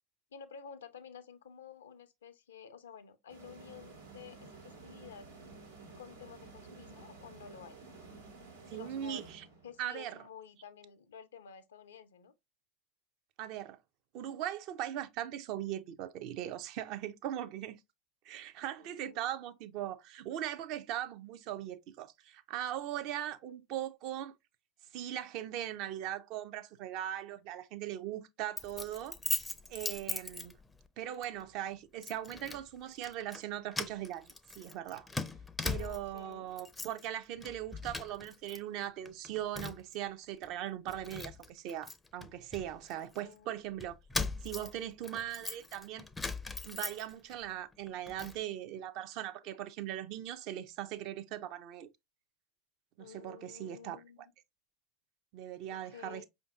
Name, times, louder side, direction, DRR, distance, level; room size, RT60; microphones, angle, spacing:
voice 1, 0.3-5.3 6.0-7.8 8.6-9.3 9.6-12.3 18.8-19.2 35.7-36.5 43.0-43.5 53.0-54.2 55.7-56.3, left 7 dB, 80° left, 0.5 m, -51 dB
sound 1, 3.3-9.9, right 4 dB, 90° right, 1.2 m, -52 dB
voice 2, 8.7-9.4 9.8-10.2 13.4-13.8 14.1-17.8 18.2-24.3 24.9-30.6 31.0-35.1 35.6-44.0 44.4-46.1 46.6-51.9 53.0-54.0 55.3-56.2, right 11 dB, 55° right, 0.4 m, -40 dB
Keys jangling, 28.6-30.9 31.2-31.4 32.0-32.6 33.0-33.4 33.7-36.2 36.5-37.1 37.4-38.6 38.8-40.0 40.4-40.5 40.9-43.2 43.8-47.4 47.7-48.4, left 3 dB, 15° left, 0.4 m, -40 dB
5.0 x 2.6 x 2.3 m
hypercardioid pair, 80°, 0 cm